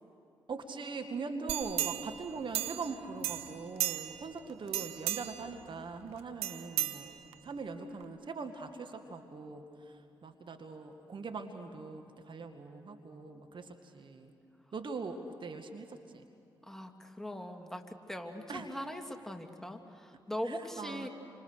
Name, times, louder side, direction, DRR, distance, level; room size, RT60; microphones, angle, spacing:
voice 1, 0.5-7.1 7.4-14.3 14.7-16.3 18.5-18.7 20.4-21.1, right 4 dB, 50° right, 6 dB, 1.9 m, -42 dB
sound 1, 1.5-3.0 3.2-4.3 4.7-5.5 6.4-7.5 8.0-8.1, right 14 dB, 75° right, 0.9 m, -35 dB
voice 2, 16.6-21.1, equal, 5° left, 4 dB, 2.7 m, -41 dB
29.5 x 26.0 x 6.6 m, 2.6 s
hypercardioid pair, 40°, 10 cm